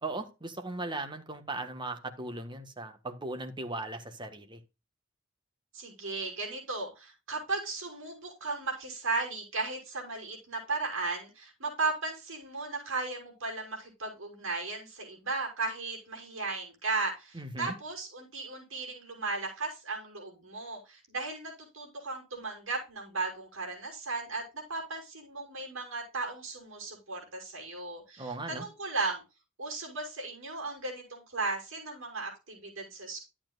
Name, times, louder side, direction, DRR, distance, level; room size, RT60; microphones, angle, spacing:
voice 1, 0.0-4.6 17.3-17.7 28.2-28.6, right 2 dB, 25° right, 6 dB, 1.5 m, -38 dB
voice 2, 5.7-29.2 29.6-33.3, right 3 dB, 70° right, 1 dB, 6.3 m, -36 dB
11.5 x 8.8 x 2.5 m, 0.28 s
head